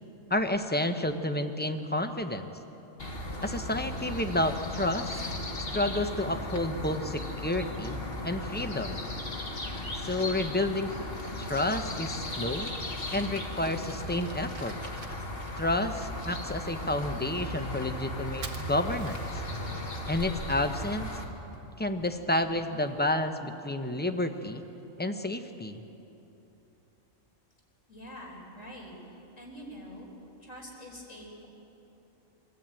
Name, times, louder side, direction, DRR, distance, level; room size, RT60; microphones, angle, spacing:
voice 1, 0.3-2.5 3.4-5.2 5.7-8.0 8.2-9.0 10.0-10.9 11.4-12.7 13.1-14.8 15.6-19.2 20.1-21.1 21.8-24.6 25.0-25.8, left 1 dB, 10° left, 7 dB, 0.7 m, -30 dB
sound 1, 3.0-21.2, left 1 dB, 45° left, 1.9 m, -36 dB
Fire, 13.4-23.1, right 3 dB, 70° right, 1.7 m, -50 dB
voice 2, 27.9-28.9 29.4-30.1 30.4-31.5, equal, 70° left, -2 dB, 4.8 m, -45 dB
23.5 x 14.0 x 9.0 m, 3.0 s
omnidirectional pair, 1.4 m